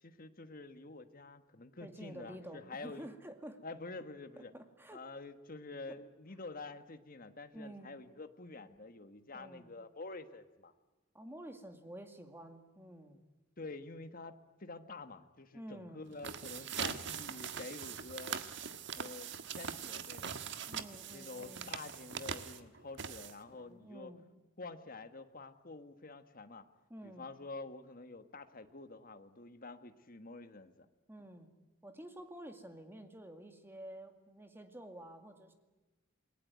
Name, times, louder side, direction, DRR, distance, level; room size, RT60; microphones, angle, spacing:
voice 1, 0.0-3.1 3.6-4.5 4.9-10.7 13.6-18.4 18.9-20.4 21.1-24.1 24.6-26.6 27.0-30.9, left 3 dB, 40° left, 9 dB, 1.5 m, -48 dB
voice 2, 1.8-3.6 4.4-5.0 7.5-7.9 9.3-9.7 11.1-13.2 15.5-16.0 20.7-21.8 23.6-24.2 26.9-27.3 31.1-31.5 31.8-35.5, right 1 dB, 10° right, 6 dB, 2.2 m, -50 dB
sound 1, 16.1-23.6, right 7 dB, 60° right, 1.5 m, -42 dB
28.0 x 21.0 x 9.5 m, 1.1 s
head